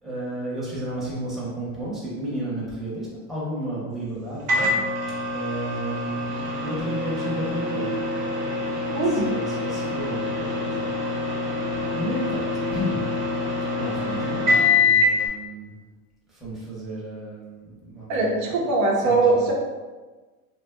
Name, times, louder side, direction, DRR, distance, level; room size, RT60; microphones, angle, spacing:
voice 1, 0.0-4.7 5.3-6.3 6.6-8.0 9.1-11.3 12.0-13.0 13.8-15.7 16.3-18.5 19.0-19.5, right 1 dB, ahead, -8 dB, 0.7 m, -33 dB
Microwave oven, 4.5-15.2, left 3 dB, 90° right, 0.9 m, -25 dB
voice 2, 8.9-9.3 18.1-19.5, right 3 dB, 65° right, -1 dB, 0.7 m, -21 dB
2.5 x 2.3 x 2.3 m, 1.3 s
supercardioid pair, 115°, 41 cm